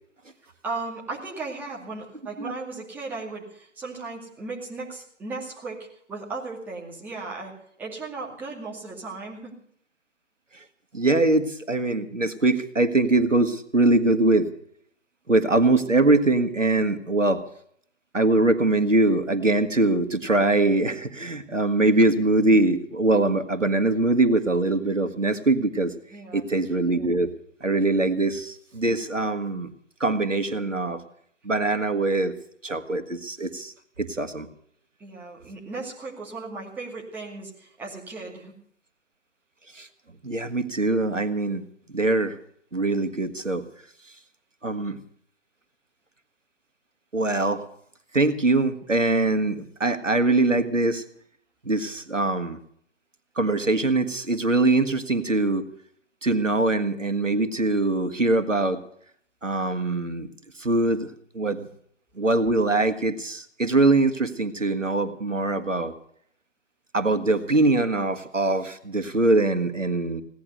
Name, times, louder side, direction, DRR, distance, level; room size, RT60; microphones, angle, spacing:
voice 1, 0.4-7.5 7.8-9.5 26.1-26.4 35.0-38.5, right 3 dB, 5° right, -4 dB, 2.3 m, -36 dB
voice 2, 10.9-14.5 15.3-17.4 18.1-25.9 26.3-27.3 27.6-29.7 30.0-31.0 31.4-32.3 32.6-33.7 34.0-34.5 39.7-39.9 40.2-41.6 41.9-42.4 42.7-43.6 44.6-45.0 47.1-47.6 48.1-51.0 51.6-52.6 53.4-55.6 56.2-58.8 59.4-60.3 60.6-61.1 61.3-61.7 62.2-65.9 66.9-70.2, right 2 dB, 90° right, 9 dB, 1.9 m, -22 dB
17.5 x 11.0 x 6.7 m, 0.65 s
figure-of-eight pair, 145°, 37 cm